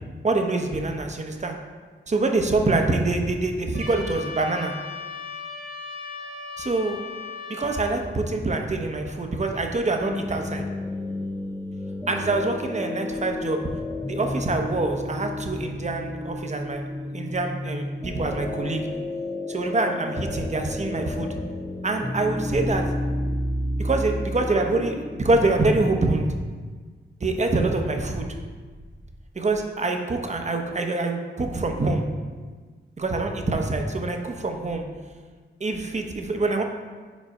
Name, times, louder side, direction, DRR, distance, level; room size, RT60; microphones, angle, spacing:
voice 1, 0.2-1.6 2.1-4.7 6.6-7.0 7.5-10.6 12.1-13.6 14.1-16.8 17.1-18.8 19.5-21.4 21.8-22.8 23.8-26.3 27.2-28.3 29.3-32.0 33.0-34.9 35.6-36.6, right 2 dB, 35° right, 4 dB, 0.8 m, -25 dB
Trumpet, 3.7-7.9, left 4 dB, 70° left, 1.7 m, -37 dB
sound 1, 10.0-26.0, left 1 dB, 10° left, 0.5 m, -31 dB
5.3 x 4.0 x 4.8 m, 1.5 s
cardioid pair, 65°, 21 cm